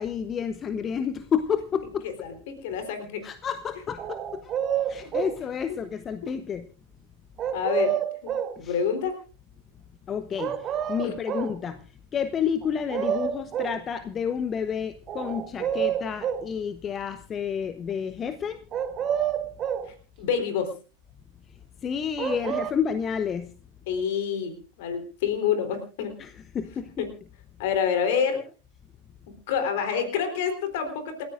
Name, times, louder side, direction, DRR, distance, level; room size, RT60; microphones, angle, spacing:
voice 1, 0.0-2.1 3.2-6.7 8.6-8.8 10.1-18.6 21.8-23.5 26.2-27.0, left 7 dB, 25° left, 12 dB, 0.9 m, -30 dB
voice 2, 2.2-3.2 7.5-9.1 11.0-11.2 19.9-20.7 23.9-26.2 27.0-27.1 27.6-28.4 29.5-31.2, left 7 dB, 50° left, 8 dB, 3.6 m, -28 dB
sound 1, 4.0-5.4 7.4-8.6 10.4-11.6 12.6-12.7 12.9-13.8 15.1-16.5 18.7-19.9 22.2-22.7, right 9 dB, 30° right, 1.2 m, -28 dB
28.5 x 14.0 x 2.5 m, 0.36 s
figure-of-eight pair, 90°, 0 cm